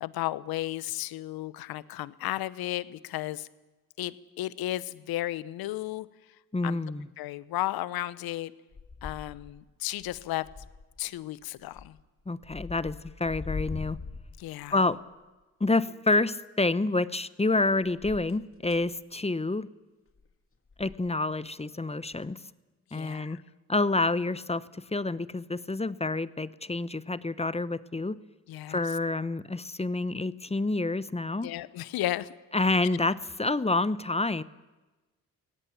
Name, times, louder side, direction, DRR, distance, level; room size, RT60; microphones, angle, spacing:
voice 1, 0.0-3.5 4.0-6.1 6.6-6.8 7.2-8.5 9.0-10.5 11.0-12.0 14.4-14.8 22.9-23.4 28.5-28.8 31.4-32.3, left 15 dB, 75° left, 18 dB, 0.9 m, -34 dB
voice 2, 6.5-7.1 12.3-14.0 14.7-15.0 15.6-19.7 20.8-22.4 22.9-23.4 23.7-28.2 28.7-31.5 32.5-34.4, left 2 dB, 15° left, 16 dB, 1.0 m, -28 dB
sound 1, 8.7-9.7 10.0-11.0 11.6-12.0 12.4-14.9 17.8-19.0 20.1-20.3 20.7-21.1 22.1-22.3, left 4 dB, 35° left, 2.2 m, -42 dB
22.0 x 17.5 x 8.6 m, 1.2 s
hypercardioid pair, 45°, 37 cm